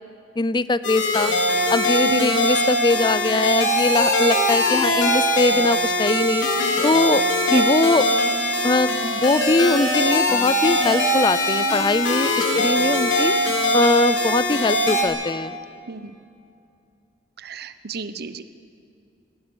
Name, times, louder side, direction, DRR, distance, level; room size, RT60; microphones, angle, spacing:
voice 1, 0.4-1.3 1.7-6.5 6.8-7.2 7.5-8.1 8.6-13.3 13.7-15.5, left 3 dB, 25° left, 15 dB, 0.5 m, -21 dB
sound 1, 0.8-15.0, left 1 dB, 80° left, 4.0 m, -21 dB
voice 2, 2.0-2.4 4.8-4.9 7.5-7.6 12.4-12.7 15.9-16.1 17.4-18.4, right 4 dB, 60° right, 12 dB, 1.0 m, -33 dB
20.0 x 17.0 x 9.7 m, 2.5 s
head